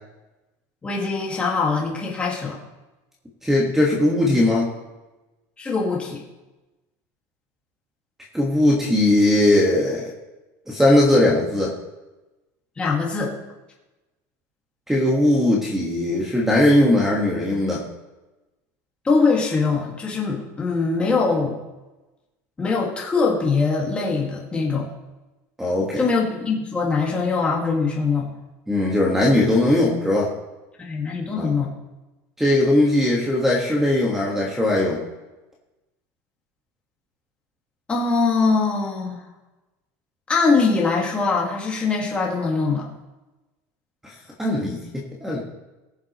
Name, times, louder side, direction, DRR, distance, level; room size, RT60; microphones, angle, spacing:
voice 1, 0.8-2.6 5.6-6.2 12.8-13.3 19.0-21.6 22.6-24.9 26.0-28.3 30.8-31.7 37.9-39.2 40.3-42.9, left 4 dB, 15° left, -2 dB, 1.9 m, -22 dB
voice 2, 3.4-4.7 8.3-10.1 10.7-11.7 14.9-17.8 25.6-26.0 28.7-30.3 31.4-31.5 32.4-35.0 44.0-45.4, left 1 dB, 5° right, -3 dB, 1.5 m, -19 dB
21.0 x 7.4 x 3.1 m, 1.1 s
cardioid pair, 165°, 8 cm